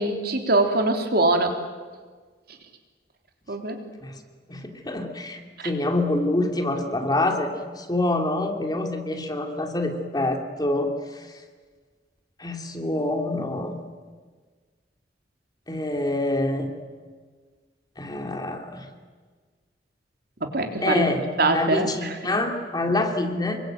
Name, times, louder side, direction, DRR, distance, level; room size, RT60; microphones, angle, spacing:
voice 1, 0.0-1.5 3.5-3.8 20.5-21.0 21.4-22.1, right 2 dB, 60° right, 5 dB, 3.4 m, -22 dB
voice 2, 4.5-5.4 5.6-11.2 12.4-13.8 15.7-16.7 18.0-18.9 20.8-21.2 21.5-23.6, left 2 dB, 25° left, 4 dB, 2.8 m, -26 dB
27.0 x 23.5 x 8.9 m, 1.5 s
head